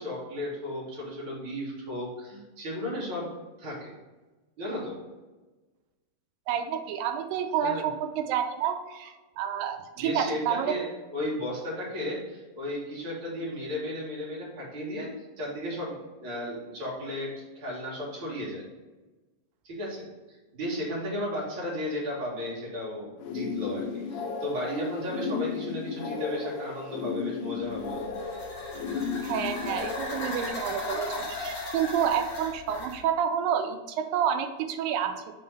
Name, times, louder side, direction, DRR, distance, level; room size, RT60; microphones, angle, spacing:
voice 1, 0.0-3.3 3.6-3.9 4.6-5.0 7.6-7.9 10.0-18.6 19.6-28.2, left 1 dB, 45° right, -5 dB, 2.3 m, -34 dB
voice 2, 6.5-10.8 29.2-35.2, right 8 dB, 85° right, 7 dB, 2.3 m, -29 dB
sound 1, 23.2-30.5, left 5 dB, 85° left, 1.6 m, -34 dB
sound 2, 27.7-33.0, left 2 dB, 50° left, 2.3 m, -37 dB
5.2 x 3.7 x 5.4 m, 1.2 s
omnidirectional pair, 4.0 m